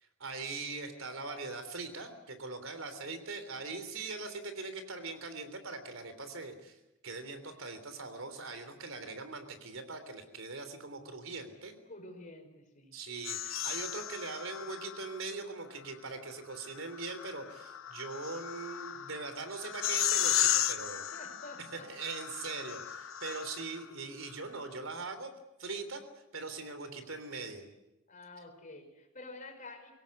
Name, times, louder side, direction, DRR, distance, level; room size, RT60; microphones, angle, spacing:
voice 1, 0.2-6.8 7.0-11.7 12.9-21.1 21.6-25.3 25.6-26.0 26.3-27.6, right 3 dB, 75° right, 9 dB, 3.4 m, -41 dB
voice 2, 11.9-12.9 21.1-21.9 28.1-29.9, left 2 dB, 40° left, 4 dB, 5.2 m, -49 dB
sound 1, 13.2-15.2 16.7-23.8, left 11 dB, 75° left, 1.0 m, -35 dB
23.5 x 17.5 x 9.7 m, 0.95 s
head